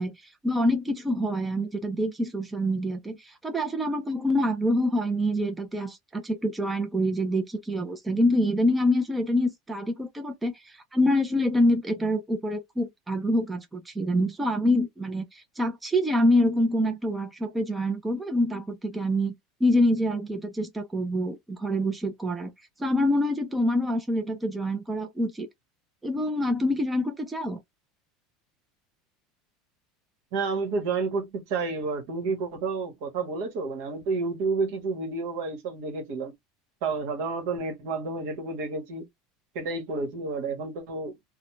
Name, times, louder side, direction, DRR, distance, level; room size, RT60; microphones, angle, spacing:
voice 1, 0.0-19.3 19.6-22.5 22.8-25.5 26.0-27.6, left 1 dB, 10° right, 0.5 m, -26 dB
voice 2, 30.3-36.3 36.8-39.1 39.5-41.1, right 4 dB, 65° right, 1.1 m, -30 dB
2.4 x 2.1 x 3.0 m
supercardioid pair, 150°, 0 cm